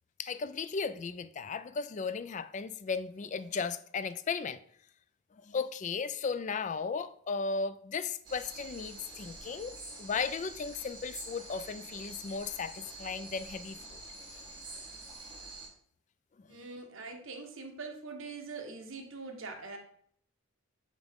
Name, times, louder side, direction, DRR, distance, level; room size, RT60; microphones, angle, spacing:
voice 1, 0.2-4.6 5.4-14.0 16.6-16.7, left 5 dB, 35° left, 0.3 m, -36 dB
sound 1, 8.2-15.7, right 2 dB, 20° right, 2.7 m, -47 dB
voice 2, 16.5-19.8, right 4 dB, 65° right, 1.1 m, -43 dB
8.8 x 3.6 x 3.6 m
head